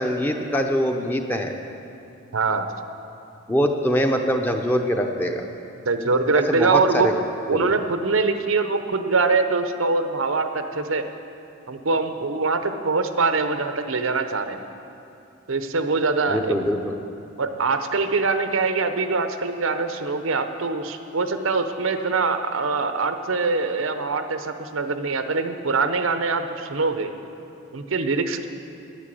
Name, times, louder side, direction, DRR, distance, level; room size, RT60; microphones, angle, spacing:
voice 1, 0.0-1.5 3.5-5.4 6.5-7.1 7.5-7.7 16.3-16.9, equal, 10° left, 4 dB, 0.7 m, -23 dB
voice 2, 2.3-2.7 5.8-7.1 7.5-11.1 11.7-14.6 15.5-16.6 17.4-27.1 27.7-28.5, right 4 dB, 85° right, 8 dB, 0.8 m, -23 dB
10.5 x 10.0 x 7.7 m, 2.7 s
head